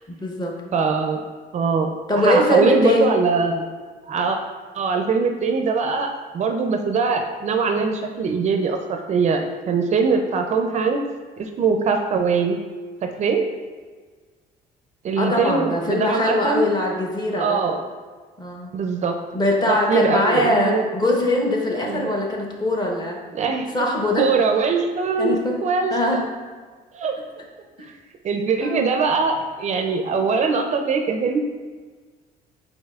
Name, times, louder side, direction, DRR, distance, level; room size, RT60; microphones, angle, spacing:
voice 1, 0.1-0.5 2.1-3.2 15.2-17.6 18.4-18.7 19.3-23.2 23.7-24.3 25.2-25.6 25.9-26.3 27.8-27.9 28.6-28.9, left 1 dB, 25° left, 0 dB, 0.8 m, -21 dB
voice 2, 0.7-1.2 1.5-3.6 4.1-4.4 4.7-11.0 11.4-12.6 13.0-13.4 15.0-16.7 17.3-17.8 18.7-19.1 19.7-20.8 21.9-22.1 23.3-23.7 24.2-25.9 26.9-27.2 28.2-31.4, right 5 dB, 45° right, 5 dB, 0.4 m, -22 dB
5.4 x 4.1 x 2.3 m, 1.5 s
cardioid pair, 110°, 17 cm